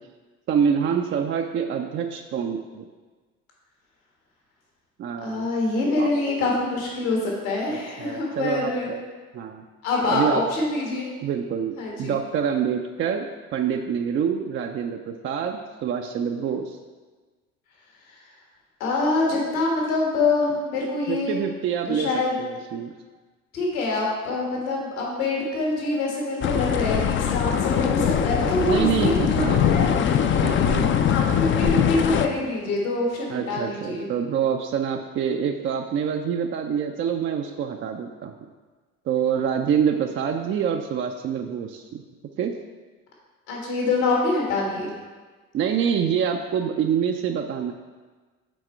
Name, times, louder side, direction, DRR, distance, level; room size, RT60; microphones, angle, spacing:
voice 1, 0.5-2.9 5.0-5.5 6.0-6.1 7.7-9.0 9.3-9.7 10.1-10.4 11.2-16.8 21.1-22.1 22.4-22.9 28.6-29.9 30.4-30.9 33.3-38.3 39.1-42.0 42.4-42.5 45.5-47.7, right 7 dB, 30° right, 4 dB, 0.4 m, -26 dB
voice 2, 5.2-8.9 9.8-11.1 11.8-12.2 18.8-21.3 21.8-22.4 23.5-30.0 31.0-34.1 43.5-44.9, left 2 dB, 70° left, -2 dB, 1.6 m, -25 dB
sound 1, 26.4-32.3, left 8 dB, 30° left, 0.4 m, -22 dB
6.2 x 4.2 x 4.4 m, 1.4 s
figure-of-eight pair, 60°, 43 cm